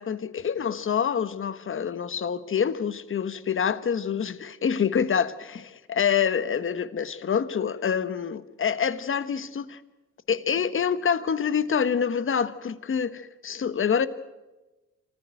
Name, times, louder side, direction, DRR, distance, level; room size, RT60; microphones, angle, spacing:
voice 1, 0.0-9.8 10.3-14.1, left 7 dB, 40° left, 1.3 m, -26 dB
26.0 x 14.5 x 9.1 m
cardioid pair, 90°, 30 cm